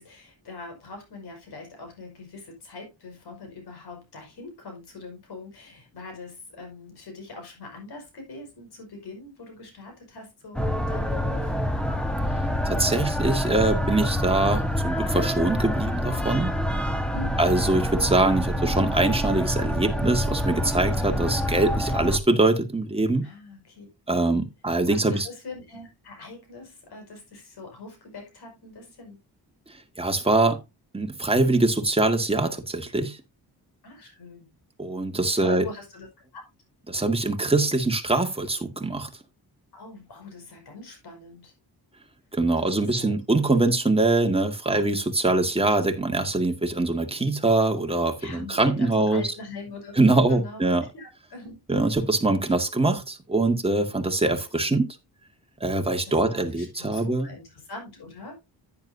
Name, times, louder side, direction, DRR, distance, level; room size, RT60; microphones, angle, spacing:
voice 1, 0.0-11.5 17.1-17.5 23.2-23.9 24.2-24.5 24.9-29.2 33.8-34.6 35.3-36.1 36.3-36.4 39.7-41.5 42.6-43.2 44.7-44.9 48.2-50.7 50.9-51.6 56.0-58.4, left 3 dB, 80° left, 5.6 m, -42 dB
sound 1, 10.5-22.2, equal, ahead, 1.4 m, -26 dB
voice 2, 12.7-16.5 17.4-23.2 24.1-25.3 30.0-30.6 30.9-33.2 34.8-35.7 36.9-39.1 42.3-49.2 50.0-50.8 51.7-55.0 55.6-57.3, right 2 dB, 15° right, 1.9 m, -23 dB
10.5 x 9.7 x 2.8 m
cardioid pair, 85°, 39 cm